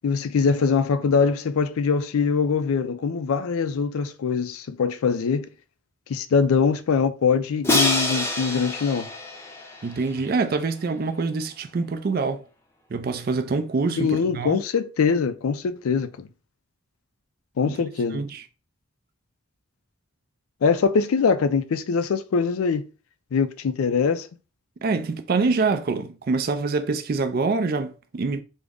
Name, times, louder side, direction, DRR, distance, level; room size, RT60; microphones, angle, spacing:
voice 1, 0.0-5.5 6.1-9.1 14.0-16.3 17.6-18.2 20.6-22.9 23.3-24.3, left 5 dB, 90° left, 0.4 m, -23 dB
Crash cymbal, 7.6-10.6, left 1 dB, 10° left, 0.5 m, -26 dB
voice 2, 9.8-12.4 12.9-14.6 17.7-17.8 18.1-18.4 24.8-28.4, right 4 dB, 45° right, 0.4 m, -25 dB
3.6 x 2.0 x 3.5 m
head